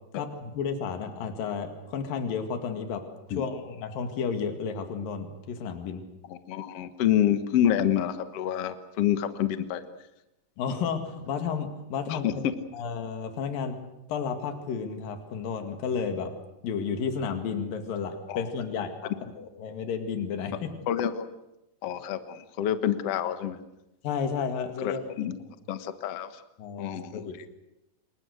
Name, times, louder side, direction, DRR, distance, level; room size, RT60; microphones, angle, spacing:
voice 1, 0.1-3.0 3.3-6.0 10.6-12.4 12.7-13.8 14.1-16.3 16.6-20.7 24.0-25.0 26.6-27.5, left 6 dB, 75° left, 6 dB, 3.8 m, -32 dB
voice 2, 6.3-9.8 12.1-12.3 18.3-18.5 20.9-21.3 21.8-23.6 24.8-25.4 25.7-26.3 26.8-27.2, left 10 dB, 55° left, 10 dB, 2.0 m, -27 dB
27.5 x 23.5 x 6.5 m, 0.91 s
omnidirectional pair, 4.1 m